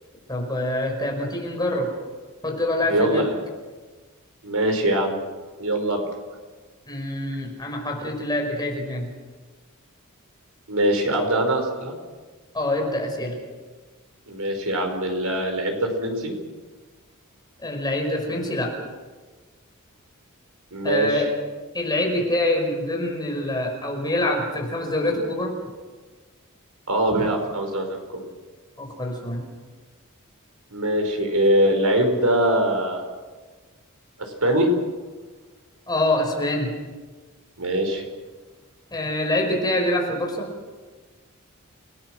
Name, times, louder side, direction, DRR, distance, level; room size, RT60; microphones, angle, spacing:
voice 1, 0.3-1.9 2.4-3.2 6.9-9.1 12.5-13.4 17.6-18.7 20.8-21.3 21.7-25.6 28.8-29.5 35.9-36.7 38.9-40.5, left 1 dB, 20° left, 1 dB, 5.2 m, -25 dB
voice 2, 2.9-3.3 4.4-5.2 5.6-6.0 10.7-11.9 14.3-16.3 20.7-21.2 26.9-28.2 30.7-33.0 34.4-34.7 37.6-38.0, right 1 dB, 80° right, 4 dB, 5.0 m, -22 dB
29.5 x 17.5 x 6.3 m, 1.4 s
head